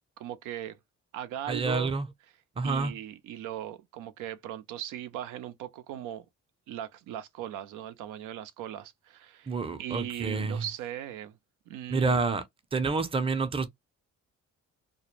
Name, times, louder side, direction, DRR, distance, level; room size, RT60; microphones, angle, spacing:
voice 1, 0.2-0.8 1.1-1.9 2.6-6.3 6.7-9.5 9.8-11.4 11.7-12.2, right 11 dB, 90° right, 0.5 m, -38 dB
voice 2, 1.5-2.1 2.6-2.9 9.5-10.6 11.9-12.4 12.7-13.7, right 4 dB, 20° right, 0.5 m, -28 dB
2.2 x 2.0 x 3.0 m
cardioid pair, 90°, 30 cm